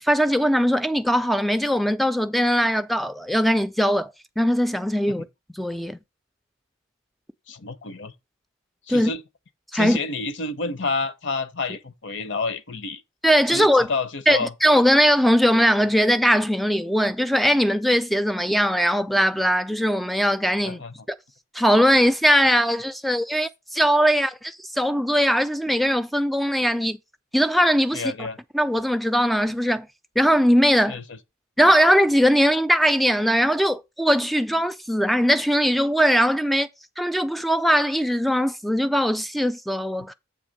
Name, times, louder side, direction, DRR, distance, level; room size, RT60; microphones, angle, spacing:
voice 1, 0.0-5.3 5.5-6.0 8.9-9.1 9.7-10.0 13.2-13.9 14.3-20.8 21.1-21.2 21.5-27.0 27.3-28.3 28.5-29.9 30.2-31.0 31.6-36.7 37.0-40.1, equal, ahead, 0.3 m, -20 dB
voice 2, 7.5-8.1 8.9-9.2 9.7-13.0 13.5-14.5 20.6-20.9 27.9-28.4 30.9-31.2, left 3 dB, 60° left, 0.8 m, -29 dB
7.8 x 3.3 x 6.4 m
head